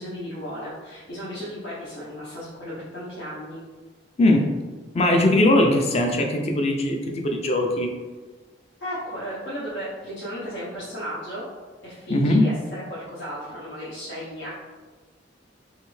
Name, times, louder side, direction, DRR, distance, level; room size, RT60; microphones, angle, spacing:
voice 1, 0.0-3.6 8.8-11.5 11.8-14.5, equal, 85° left, -10 dB, 0.9 m, -34 dB
voice 2, 4.9-7.9 12.1-12.5, left 1 dB, 35° left, 2 dB, 0.4 m, -20 dB
3.2 x 2.6 x 3.1 m, 1.3 s
head